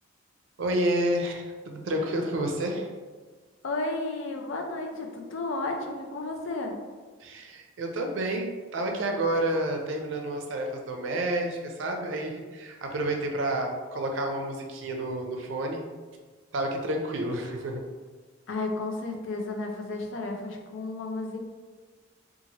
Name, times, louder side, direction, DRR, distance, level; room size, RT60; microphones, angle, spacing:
voice 1, 0.6-2.9 7.2-15.8 16.5-17.8, right 1 dB, 80° right, 2 dB, 0.5 m, -30 dB
voice 2, 3.6-6.7 18.5-21.4, left 2 dB, 80° left, 3 dB, 0.4 m, -32 dB
2.8 x 2.4 x 2.7 m, 1.4 s
head